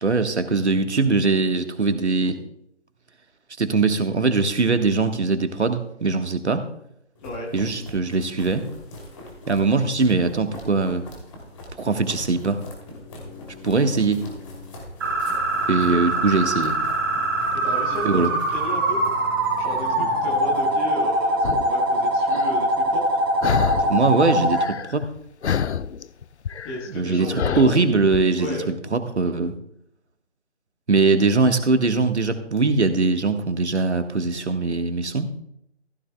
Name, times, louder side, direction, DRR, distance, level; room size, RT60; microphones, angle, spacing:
voice 1, 0.0-2.4 3.6-6.6 7.5-8.7 9.5-11.0 11.8-12.6 13.6-14.2 15.7-16.8 18.0-18.3 23.8-25.1 26.9-29.5 30.9-35.3, right 3 dB, 70° right, 8 dB, 1.4 m, -21 dB
sound 1, 7.1-20.8, left 2 dB, 25° left, 2.8 m, -41 dB
voice 2, 7.2-7.5 15.9-16.0 17.6-18.2 18.5-19.0 19.6-23.2 26.6-27.9 28.4-28.7, left 1 dB, 10° left, -2 dB, 1.1 m, -33 dB
sound 2, 15.0-24.7, right 1 dB, 20° right, 1.0 m, -23 dB
sound 3, 21.4-21.7 22.3-22.5 23.4-24.1 24.3-25.2 25.4-28.2, left 7 dB, 70° left, 0.5 m, -27 dB
15.5 x 12.5 x 2.3 m, 0.75 s
figure-of-eight pair, 150°, 35 cm